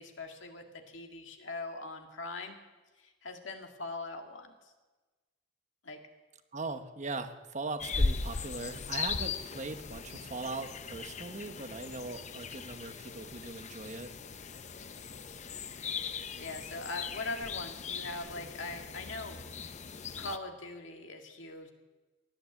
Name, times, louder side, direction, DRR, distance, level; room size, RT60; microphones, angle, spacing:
voice 1, 0.0-2.6 3.0-4.7 5.8-6.0 16.4-19.4 20.2-21.7, left 2 dB, 75° left, 4 dB, 2.0 m, -41 dB
voice 2, 6.5-14.1, right 3 dB, 40° right, 7 dB, 1.1 m, -40 dB
sound 1, 7.8-20.4, left 4 dB, 35° left, 0.6 m, -38 dB
18.0 x 10.0 x 7.8 m, 1.2 s
head